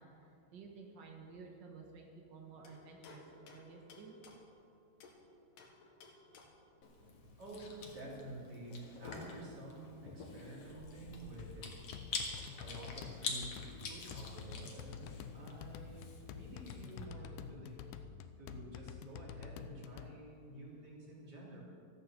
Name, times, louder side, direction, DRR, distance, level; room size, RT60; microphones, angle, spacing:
voice 1, 0.0-4.2, right 4 dB, 75° right, 1 dB, 1.0 m, -53 dB
sound 1, 2.6-5.2 5.6-6.7 8.7-8.8 9.0-10.7, left 3 dB, 70° left, 3.0 m, -55 dB
Chewing mastication, 6.8-17.0, left 4 dB, 50° left, 2.2 m, -47 dB
voice 2, 7.4-11.7 12.6-18.0 18.4-21.6, right 2 dB, 30° right, -4 dB, 3.3 m, -50 dB
sound 2, 11.4-20.1, left 8 dB, 85° left, 1.8 m, -49 dB
14.0 x 9.5 x 7.6 m, 2.5 s
omnidirectional pair, 4.2 m